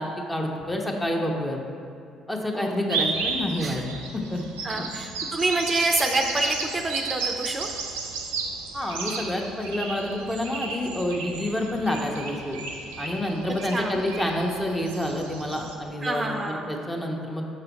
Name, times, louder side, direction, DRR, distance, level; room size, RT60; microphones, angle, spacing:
voice 1, 0.0-1.6 2.3-4.8 8.7-12.6 13.0-17.4, left 1 dB, 15° left, 1 dB, 1.0 m, -28 dB
sound 1, 2.9-15.7, right 4 dB, 85° right, 0.6 m, -33 dB
voice 2, 4.6-7.7 13.7-14.0 16.0-16.6, right 2 dB, 30° right, 3 dB, 0.6 m, -27 dB
6.3 x 5.6 x 4.0 m, 2.4 s
hypercardioid pair, 50°, 0 cm